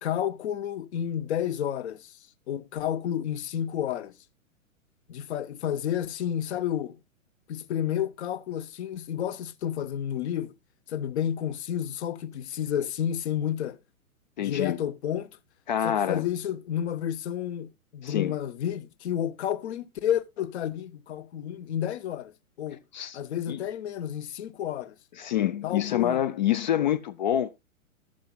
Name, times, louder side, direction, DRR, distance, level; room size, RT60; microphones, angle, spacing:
voice 1, 0.0-2.1 2.5-4.1 5.1-7.0 7.5-10.5 10.9-13.8 14.4-15.3 15.8-22.8 23.1-24.9 25.6-26.2, left 10 dB, 50° left, 0.8 m, -31 dB
voice 2, 14.4-14.8 15.7-16.3 18.0-18.4 22.9-23.2 23.5-23.6 25.2-27.5, left 11 dB, 35° left, 0.4 m, -26 dB
13.0 x 7.6 x 2.2 m
figure-of-eight pair, 115°, 42 cm